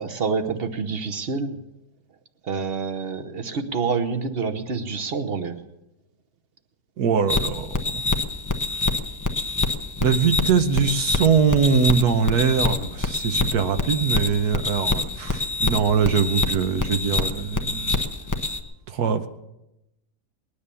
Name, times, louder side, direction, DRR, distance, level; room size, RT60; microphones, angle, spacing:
voice 1, 0.0-1.6 2.4-5.6, right 5 dB, 40° right, 8 dB, 1.0 m, -27 dB
voice 2, 7.0-7.7 7.9-8.0 10.0-18.0 18.9-19.3, right 6 dB, 70° right, 8 dB, 1.4 m, -22 dB
sound 1, 7.3-18.6, left 3 dB, 20° left, 0.5 m, -26 dB
20.0 x 10.0 x 6.9 m, 0.91 s
omnidirectional pair, 1.8 m